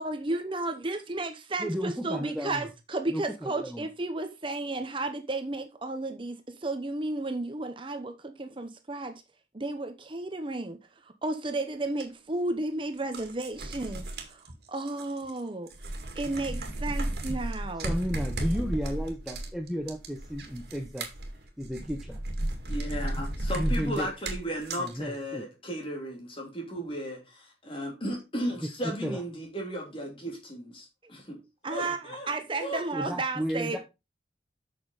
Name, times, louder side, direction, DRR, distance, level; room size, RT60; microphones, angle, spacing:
voice 1, 0.0-9.2 9.5-10.8 11.2-15.7 16.2-17.9 31.6-33.8, right 2 dB, 30° right, 0.8 m, -33 dB
voice 2, 1.6-2.7 3.1-3.9 17.8-21.1 21.6-22.2 23.6-24.1 24.8-25.5 28.8-29.2 32.9-33.8, equal, ahead, 0.9 m, -33 dB
sound 1, 12.0-12.1 13.0-15.4 15.7-24.9, right 1 dB, 65° right, 2.3 m, -34 dB
voice 3, 22.7-32.8, equal, 30° left, 3.2 m, -35 dB
8.4 x 6.3 x 4.0 m
head